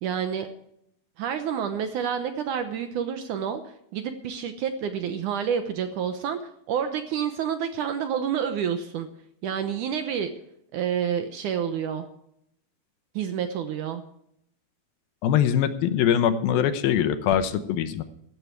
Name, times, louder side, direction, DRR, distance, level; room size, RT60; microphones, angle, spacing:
voice 1, 0.0-0.5 1.2-6.4 6.7-9.1 9.4-10.3 10.7-12.1 13.2-14.0, right 8 dB, 70° right, 8 dB, 2.1 m, -28 dB
voice 2, 15.2-18.0, left 9 dB, 80° left, 10 dB, 2.7 m, -22 dB
15.0 x 12.5 x 4.6 m, 0.74 s
omnidirectional pair, 4.4 m